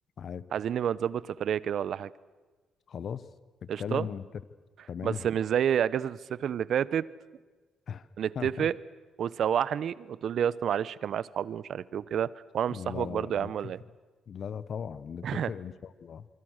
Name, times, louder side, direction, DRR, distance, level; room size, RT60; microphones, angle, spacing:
voice 1, 0.5-2.1 3.7-4.1 5.0-7.0 8.2-8.7 9.2-12.3 12.5-13.8 15.2-15.5, right 9 dB, 65° right, 20 dB, 0.7 m, -29 dB
voice 2, 2.9-3.3 3.6-4.2 4.9-5.2 7.9-8.1 8.3-8.7 12.7-13.5 14.3-16.3, left 7 dB, 55° left, 16 dB, 1.0 m, -37 dB
25.0 x 24.5 x 6.5 m, 1.3 s
cardioid pair, 90°, 0 cm